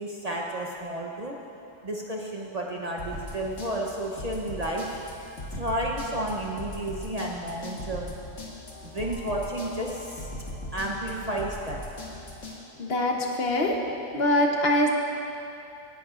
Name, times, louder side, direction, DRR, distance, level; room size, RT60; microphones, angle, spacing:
voice 1, 0.0-1.3 1.8-4.9 5.5-8.1 8.9-10.3 10.7-11.8, right 1 dB, 40° right, -1 dB, 0.8 m, -32 dB
sound 1, 3.0-12.6, left 1 dB, 80° left, 1.8 m, -39 dB
voice 2, 12.8-13.7 14.1-14.9, left 1 dB, 55° left, 1 dB, 1.1 m, -23 dB
17.0 x 10.5 x 2.4 m, 2.7 s
omnidirectional pair, 1.3 m